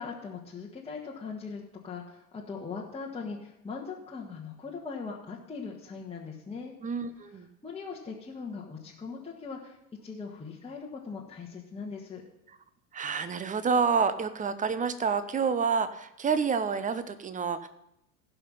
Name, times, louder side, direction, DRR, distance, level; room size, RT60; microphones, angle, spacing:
voice 1, 0.0-6.7 7.6-12.2, left 5 dB, 15° left, -2 dB, 1.6 m, -40 dB
voice 2, 6.8-7.5 12.9-17.7, right 5 dB, 15° right, 12 dB, 0.8 m, -28 dB
16.0 x 5.8 x 5.6 m, 0.82 s
figure-of-eight pair, 80°, 45 cm